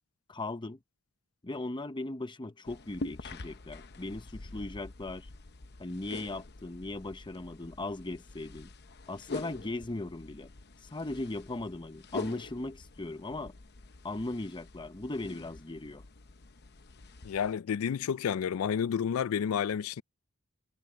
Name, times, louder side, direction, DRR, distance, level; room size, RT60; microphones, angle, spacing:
voice 1, 0.3-0.8 1.4-5.3 5.8-8.7 9.1-10.5 10.8-13.6 14.0-16.0, left 2 dB, 20° left, 0.8 m, -38 dB
sound 1, 2.6-17.5, left 3 dB, 50° left, 0.9 m, -45 dB
voice 2, 17.2-20.0, left 7 dB, 85° left, 0.4 m, -30 dB
head